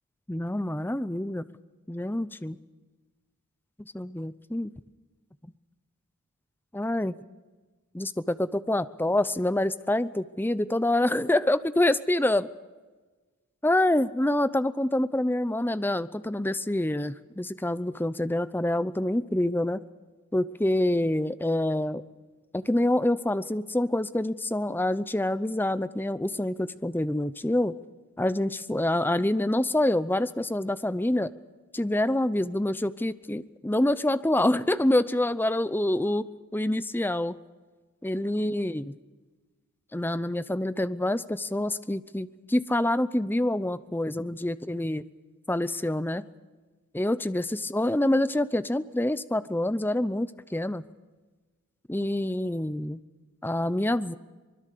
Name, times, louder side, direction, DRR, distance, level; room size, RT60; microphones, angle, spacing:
voice 1, 0.3-1.4 1.9-2.6 3.9-4.7 6.7-7.1 7.9-12.5 13.6-19.8 20.3-22.0 22.5-27.7 28.2-31.3 31.7-36.3 36.5-37.4 38.0-38.9 39.9-45.0 45.5-46.2 46.9-50.8 51.9-53.0 53.4-54.2, left 1 dB, 10° left, 14 dB, 0.6 m, -26 dB
24.0 x 21.5 x 6.8 m, 1.3 s
head